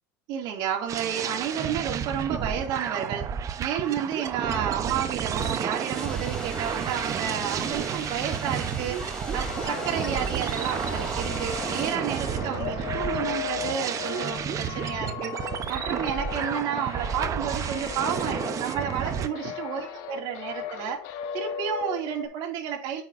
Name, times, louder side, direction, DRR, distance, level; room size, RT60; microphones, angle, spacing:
voice 1, 0.3-3.3 3.6-23.0, right 8 dB, 60° right, 1 dB, 2.3 m, -31 dB
sound 1, 0.9-19.3, right 8 dB, 35° right, 0.7 m, -31 dB
sound 2, 5.9-11.9, equal, 10° left, 2.8 m, -38 dB
sound 3, 9.3-22.3, left 10 dB, 65° left, 0.9 m, -37 dB
8.6 x 5.6 x 2.5 m, 0.41 s
supercardioid pair, 120°, 9 cm